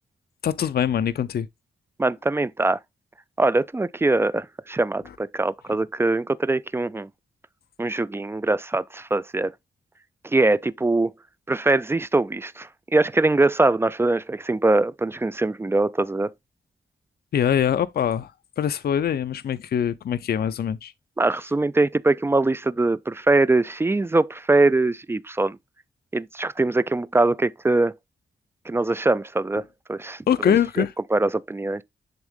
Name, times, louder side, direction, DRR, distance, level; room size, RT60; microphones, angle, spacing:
voice 1, 0.4-1.5 17.3-18.3 18.6-20.9 30.3-30.9, left 9 dB, 60° left, 0.5 m, -23 dB
voice 2, 2.0-2.8 3.4-7.1 7.8-9.5 10.2-11.1 11.5-16.3 21.2-25.6 26.1-27.9 28.7-29.6 29.9-30.8 31.1-31.8, right 2 dB, 15° right, 0.3 m, -22 dB
10.5 x 3.6 x 3.6 m
wide cardioid pair, 140°, 18 cm